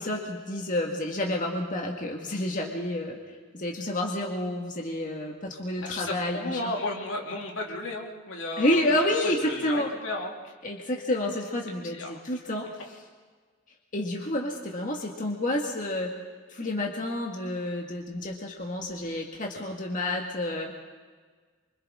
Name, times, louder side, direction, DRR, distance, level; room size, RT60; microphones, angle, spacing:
voice 1, 0.0-3.2 3.5-6.7 8.6-9.9 10.6-13.0 13.9-16.1 16.5-20.7, left 1 dB, 40° left, 0 dB, 1.8 m, -29 dB
voice 2, 5.8-8.8 9.2-10.5 11.6-12.1, left 2 dB, 75° left, 0 dB, 2.7 m, -34 dB
28.0 x 25.0 x 3.7 m, 1.5 s
head